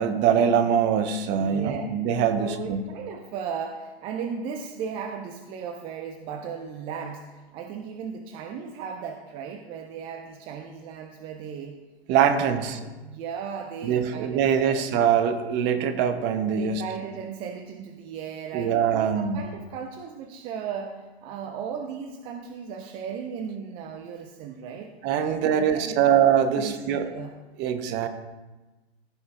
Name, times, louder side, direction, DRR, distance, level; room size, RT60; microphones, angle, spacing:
voice 1, 0.0-2.8 12.1-12.8 13.8-16.8 18.5-19.4 25.0-27.1 27.6-28.1, right 8 dB, 35° right, 9 dB, 0.9 m, -23 dB
voice 2, 1.4-1.8 2.3-7.3 7.5-11.8 12.5-14.8 16.6-24.9 25.3-26.0 26.4-27.3, right 7 dB, 15° right, 5 dB, 0.3 m, -36 dB
14.5 x 5.0 x 3.6 m, 1.2 s
hypercardioid pair, 120°, 33 cm